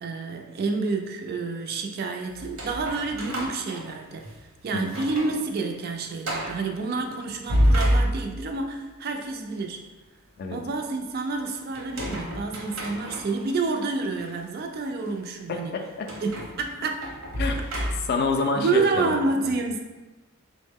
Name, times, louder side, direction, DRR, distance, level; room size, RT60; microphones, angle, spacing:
voice 1, 0.0-4.3 4.6-9.9 10.5-15.7 16.2-17.1 17.5-17.6 18.6-19.8, right 3 dB, 45° right, 3 dB, 0.3 m, -29 dB
sound 1, 2.3-4.4 4.8-5.4 5.7-5.8 6.2-6.6 7.3-8.6 11.7-13.5 14.2-14.3 16.1-18.3, equal, 70° right, 0.8 m, -28 dB
voice 2, 15.5-16.1 17.4-17.6 18.1-19.2, left 3 dB, 50° left, 4 dB, 0.3 m, -27 dB
3.4 x 2.1 x 3.5 m, 1.2 s
head